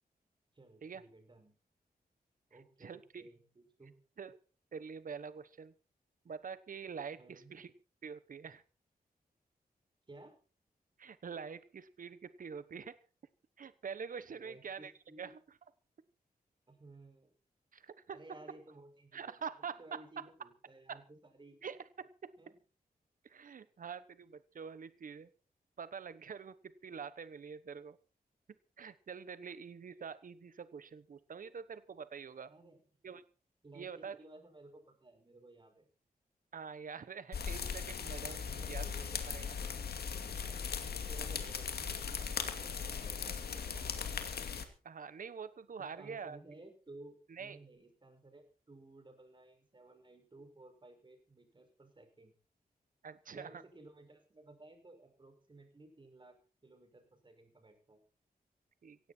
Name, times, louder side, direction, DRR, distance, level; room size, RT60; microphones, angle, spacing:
voice 1, 0.5-1.6 2.5-4.0 7.2-7.5 10.1-10.4 14.3-15.3 16.7-17.3 18.1-19.4 19.8-21.6 22.4-22.6 32.5-32.8 33.6-35.9 38.2-39.2 39.7-40.0 40.3-44.1 45.8-52.3 53.3-58.0, right 2 dB, 30° right, 5 dB, 6.2 m, -57 dB
voice 2, 2.8-3.3 4.2-4.4 4.7-5.7 6.2-7.7 8.0-8.6 11.0-13.0 13.6-14.9 15.2-15.3 17.7-18.2 19.1-19.8 20.9-21.0 21.6-22.3 23.2-25.3 25.8-28.0 28.8-32.5 33.0-33.2 33.7-34.2 36.5-38.8 39.3-39.6 44.8-46.4 47.3-47.6 53.0-53.6 58.8-59.0, right 6 dB, 60° right, 14 dB, 1.1 m, -45 dB
sound 1, 37.3-44.6, left 6 dB, 90° left, 2.5 m, -39 dB
17.0 x 16.0 x 4.5 m, 0.37 s
wide cardioid pair, 130°, 16 cm